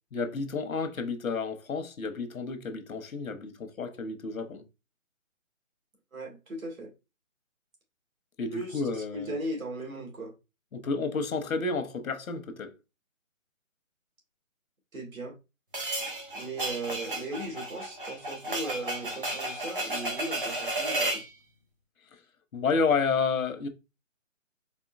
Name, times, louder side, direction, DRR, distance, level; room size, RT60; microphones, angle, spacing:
voice 1, 0.1-4.6 8.4-9.4 10.7-12.7 22.1-22.2 22.5-23.7, left 4 dB, 85° left, 0.8 m, -30 dB
voice 2, 6.1-6.9 8.5-10.3 14.9-15.3 16.3-21.2, right 2 dB, 80° right, 2.2 m, -37 dB
sound 1, 15.7-21.3, right 1 dB, 40° right, 0.9 m, -33 dB
4.3 x 2.8 x 2.4 m
hypercardioid pair, 180°, 40 cm